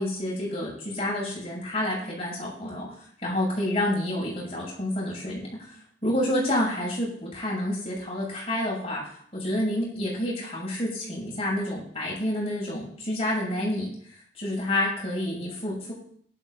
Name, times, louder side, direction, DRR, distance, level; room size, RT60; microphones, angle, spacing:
voice 1, 0.0-2.9 3.2-5.7 6.0-13.9 14.4-15.9, left 1 dB, 35° left, -4 dB, 6.6 m, -29 dB
18.0 x 12.0 x 2.6 m, 0.62 s
head